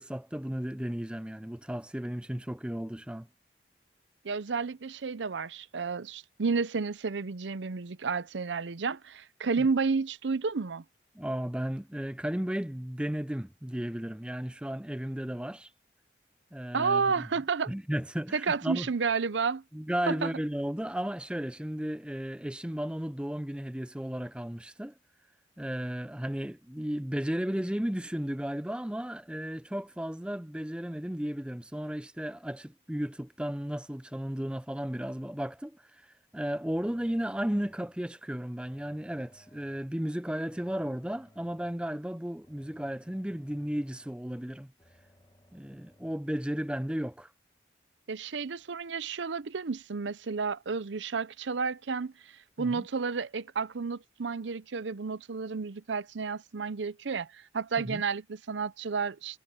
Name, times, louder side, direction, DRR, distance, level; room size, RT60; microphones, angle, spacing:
voice 1, 0.0-3.3 9.6-9.7 11.1-15.7 16.5-17.3 17.7-18.9 19.7-24.9 25.6-44.7 45.5-47.3 52.6-52.9 57.8-58.0, equal, 5° right, 0.5 m, -34 dB
voice 2, 4.2-10.8 16.7-17.7 18.3-19.6 20.1-20.3 48.1-52.1 52.6-59.4, right 5 dB, 85° right, 0.7 m, -31 dB
sound 1, 36.8-38.1 38.6-40.0 40.5-41.9 42.4-44.3 44.8-46.2, left 1 dB, 20° left, 1.8 m, -62 dB
head